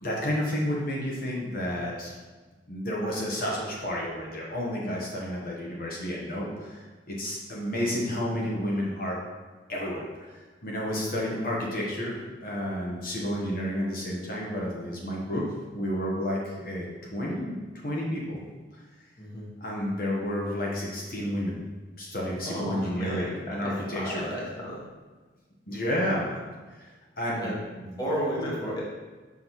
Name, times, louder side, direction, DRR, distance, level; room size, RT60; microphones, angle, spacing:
voice 1, 0.0-2.1 2.7-9.2 9.7-12.1 12.4-15.4 15.7-16.9 17.1-17.5 17.8-18.4 18.7-18.8 19.6-21.6 22.0-24.3 25.7-26.4 26.8-26.9 27.2-27.5 27.8-28.0, equal, 50° left, -3 dB, 1.1 m, -31 dB
voice 2, 19.2-19.5 22.4-24.9 27.3-27.5 28.0-28.8, equal, 20° left, -4 dB, 1.2 m, -33 dB
6.1 x 5.6 x 3.1 m, 1.3 s
head